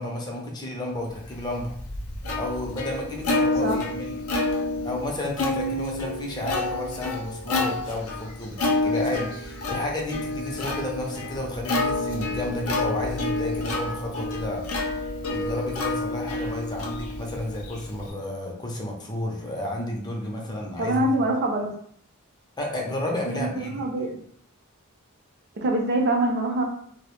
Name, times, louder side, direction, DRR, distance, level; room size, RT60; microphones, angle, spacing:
voice 1, 0.0-1.7 2.4-4.2 4.8-14.8 15.3-21.0 22.6-23.8, left 1 dB, 20° left, -1 dB, 0.5 m, -31 dB
Plucked string instrument, 1.4-18.1, left 2 dB, 85° left, 0.5 m, -29 dB
voice 2, 20.8-21.8 23.3-24.1 25.6-26.6, right 1 dB, 50° right, 1 dB, 0.5 m, -24 dB
2.1 x 2.0 x 2.9 m, 0.64 s
head